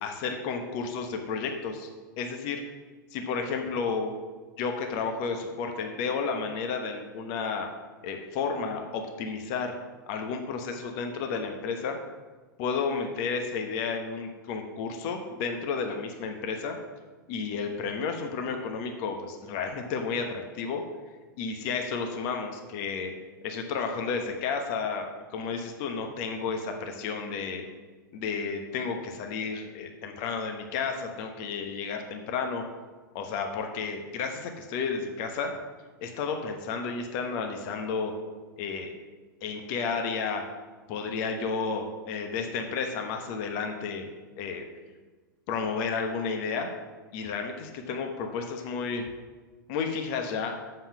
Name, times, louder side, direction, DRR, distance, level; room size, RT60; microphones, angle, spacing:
voice 1, 0.0-1.9 2.2-2.6 3.1-4.1 4.6-7.7 8.0-9.8 10.1-12.0 12.6-16.8 17.3-20.8 21.4-23.1 23.4-27.6 28.1-32.6 33.1-35.6 36.0-38.1 38.6-39.0 39.4-40.4 40.9-44.1 44.4-44.6 45.5-46.7 47.1-49.1 49.7-50.6, left 5 dB, 45° left, 4 dB, 1.2 m, -32 dB
7.3 x 5.6 x 7.2 m, 1.3 s
figure-of-eight pair, 100°, 11 cm